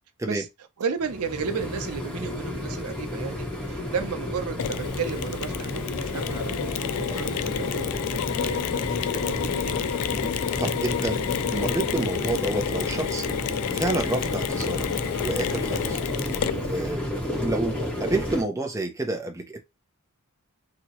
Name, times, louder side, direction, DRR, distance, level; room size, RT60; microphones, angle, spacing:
voice 1, 0.8-8.9 9.1-9.9, right 6 dB, 85° right, 0.6 m, -33 dB
sound 1, 1.0-18.4, left 1 dB, 5° left, 1.4 m, -32 dB
Mechanisms, 4.6-16.9, left 9 dB, 85° left, 0.3 m, -30 dB
voice 2, 10.1-13.3 13.7-14.9 15.2-16.0 16.6-17.1 17.3-19.6, right 2 dB, 15° right, 0.4 m, -29 dB
2.9 x 2.7 x 2.9 m
head